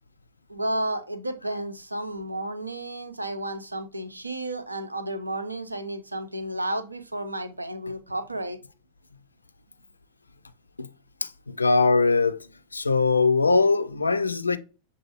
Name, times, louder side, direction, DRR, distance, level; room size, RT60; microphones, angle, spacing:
voice 1, 0.5-8.6, right 1 dB, 85° right, 0.4 m, -32 dB
voice 2, 11.2-12.5 12.7-14.6, left 4 dB, 80° left, 0.3 m, -21 dB
6.7 x 2.4 x 2.9 m
figure-of-eight pair, 90°, 0 cm